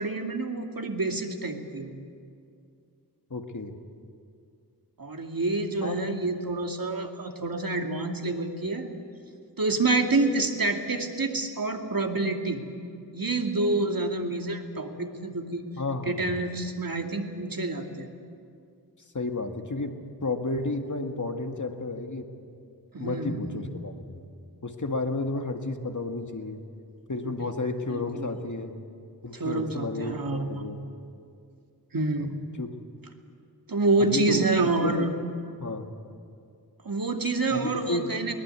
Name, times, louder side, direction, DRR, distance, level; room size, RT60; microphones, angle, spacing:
voice 1, 0.0-1.9 5.0-8.9 9.6-12.6 13.1-15.7 16.0-18.1 22.9-23.7 27.2-27.3 27.9-28.3 29.3-30.8 31.9-32.3 33.7-35.1 36.8-38.3, right 2 dB, 55° right, 3 dB, 2.4 m, -28 dB
voice 2, 3.3-3.7 5.8-6.0 15.8-16.3 19.1-20.0 20.2-22.3 23.0-24.2 24.6-26.6 27.1-28.8 29.2-30.8 32.6-32.7 34.0-34.5 34.8-35.1 35.6-35.9 37.5-38.1, left 2 dB, 45° left, 5 dB, 2.0 m, -32 dB
22.0 x 19.0 x 8.3 m, 2.4 s
cardioid pair, 45°, 40 cm